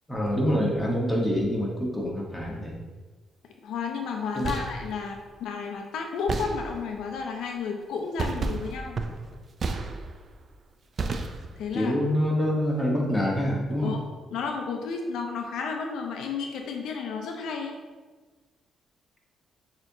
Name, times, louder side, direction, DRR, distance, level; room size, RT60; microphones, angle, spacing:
voice 1, 0.1-2.8 4.4-4.5 11.7-14.0, equal, 10° left, -2 dB, 1.1 m, -26 dB
voice 2, 3.6-9.0 11.6-12.0 13.8-14.0 14.3-17.8, left 5 dB, 80° left, 3 dB, 0.5 m, -32 dB
sound 1, 4.2-4.9 6.3-7.0 8.2-10.3 11.0-11.7, right 3 dB, 45° right, 0.4 m, -32 dB
6.4 x 2.9 x 2.7 m, 1.3 s
cardioid pair, 90°, 0 cm